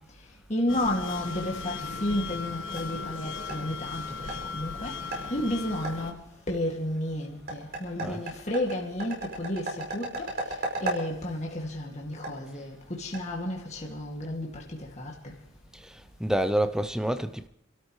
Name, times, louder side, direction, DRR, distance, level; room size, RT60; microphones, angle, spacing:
voice 1, 0.5-5.0 5.3-6.2 6.5-10.3 10.8-15.3, left 1 dB, 35° left, 2.2 m, -32 dB
sound 1, 0.7-6.1, left 4 dB, 70° left, 1.5 m, -37 dB
sound 2, 2.1-13.9, right 2 dB, 50° right, 5.1 m, -39 dB
voice 2, 15.7-17.5, right 1 dB, 5° right, 0.5 m, -28 dB
28.5 x 13.0 x 3.2 m
head